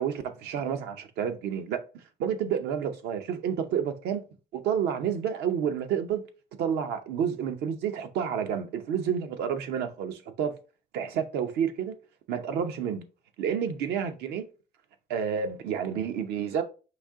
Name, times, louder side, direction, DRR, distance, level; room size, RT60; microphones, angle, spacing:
voice 1, 0.0-1.8 2.2-4.2 4.5-6.3 6.6-10.6 10.9-11.9 12.3-13.0 13.4-14.4 15.1-16.6, right 8 dB, 80° right, 0.8 m, -29 dB
5.1 x 2.8 x 3.6 m
cardioid pair, 110°, 17 cm